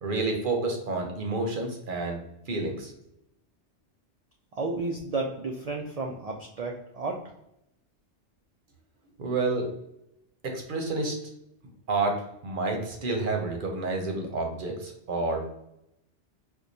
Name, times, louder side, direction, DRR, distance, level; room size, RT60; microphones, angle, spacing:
voice 1, 0.0-2.9 9.2-9.7 10.4-11.1 11.9-15.5, right 3 dB, 55° right, 2 dB, 0.7 m, -29 dB
voice 2, 4.6-7.2, right 3 dB, 85° right, 1 dB, 0.3 m, -32 dB
4.5 x 2.2 x 2.6 m, 0.83 s
omnidirectional pair, 1.2 m